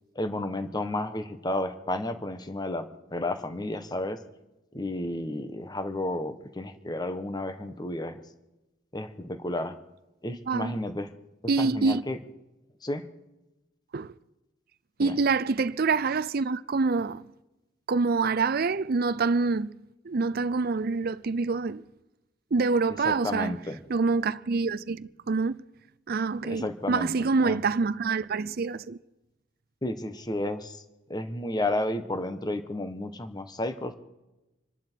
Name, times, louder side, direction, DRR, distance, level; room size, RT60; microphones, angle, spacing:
voice 1, 0.1-2.9 3.1-4.2 4.7-8.2 8.9-9.8 10.2-11.1 11.6-12.2 12.8-13.0 15.0-15.1 23.0-23.8 26.5-27.1 27.4-27.6 29.8-30.8 31.1-33.9, left 1 dB, 20° left, 1.1 m, -32 dB
voice 2, 10.5-10.8 11.5-12.0 13.9-14.1 15.0-17.3 17.9-19.7 20.0-21.8 22.5-23.6 23.9-25.6 26.1-29.0, right 4 dB, 50° right, 0.5 m, -26 dB
27.0 x 11.5 x 4.6 m
head